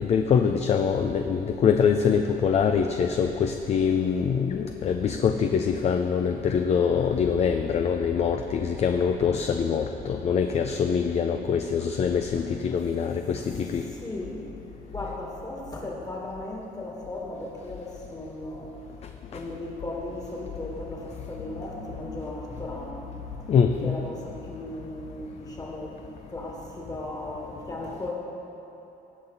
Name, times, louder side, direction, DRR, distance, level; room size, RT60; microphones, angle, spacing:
voice 1, 0.0-13.9 23.5-23.9, left 6 dB, 40° left, 6 dB, 0.4 m, -24 dB
voice 2, 13.9-14.4 14.9-18.7 19.3-23.1 23.8-26.0 26.3-28.1, left 1 dB, 20° left, -2 dB, 1.9 m, -36 dB
16.0 x 5.8 x 4.0 m, 3.0 s
cardioid pair, 110°, 17 cm